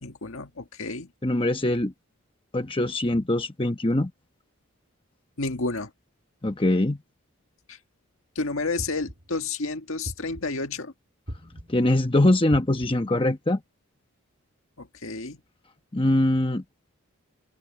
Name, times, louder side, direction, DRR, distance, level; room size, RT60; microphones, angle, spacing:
voice 1, 0.0-1.1 5.4-5.9 7.7-7.8 8.4-10.9 14.8-15.4, left 3 dB, 70° left, 1.7 m, -31 dB
voice 2, 1.2-1.9 2.5-4.1 6.4-7.0 11.7-13.6 15.9-16.6, left 1 dB, 25° left, 1.1 m, -22 dB
sound 1, 8.8-9.4 10.0-10.7 11.3-11.9 12.5-13.2, equal, 50° right, 3.6 m, -40 dB
open air
head